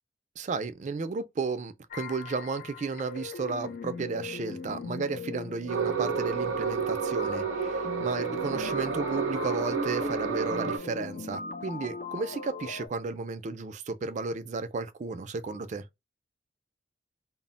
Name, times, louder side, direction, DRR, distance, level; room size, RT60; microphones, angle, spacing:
voice 1, 0.4-15.8, right 4 dB, 40° right, 0.3 m, -33 dB
sound 1, 1.9-12.9, left 4 dB, 45° left, 0.3 m, -40 dB
sound 2, 5.7-10.8, right 5 dB, 90° right, 0.5 m, -30 dB
2.1 x 2.0 x 3.7 m
head